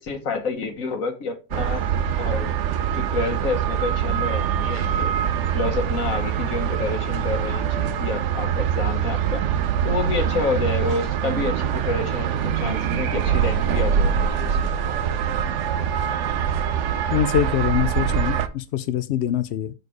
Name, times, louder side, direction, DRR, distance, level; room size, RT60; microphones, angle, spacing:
voice 1, 0.0-1.8 2.2-2.5 2.9-5.1 5.5-9.5 9.8-14.8, left 4 dB, 60° left, 1.5 m, -29 dB
sound 1, 1.5-18.5, right 8 dB, 65° right, 0.8 m, -24 dB
voice 2, 17.1-19.7, left 10 dB, 80° left, 0.6 m, -24 dB
6.6 x 4.4 x 4.8 m
omnidirectional pair, 1.7 m